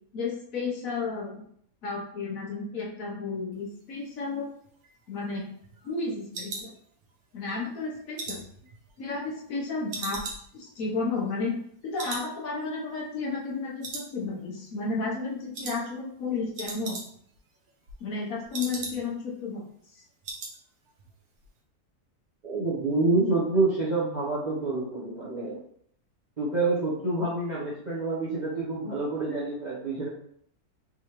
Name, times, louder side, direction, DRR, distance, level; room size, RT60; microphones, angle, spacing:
voice 1, 0.1-1.3 1.8-4.5 5.1-5.5 5.8-6.7 7.3-8.4 9.0-10.3 10.5-11.5 11.8-17.0 18.0-19.6, left 3 dB, 65° left, -2 dB, 1.2 m, -32 dB
sound 1, 4.6-7.4 7.8-9.5 9.9-11.7 12.0-12.3 12.6-12.7 13.1-13.6 13.8-14.6 14.9-15.2 15.5-15.8 16.1-16.2 16.4-17.4 17.7-19.3 19.6-19.7 20.0-20.6 20.9-21.1 21.4-21.5, right 3 dB, 75° right, 1.3 m, -39 dB
voice 2, 22.4-25.6 26.4-30.1, right 3 dB, 35° right, -7 dB, 0.8 m, -27 dB
3.6 x 3.1 x 2.9 m, 0.65 s
omnidirectional pair, 1.6 m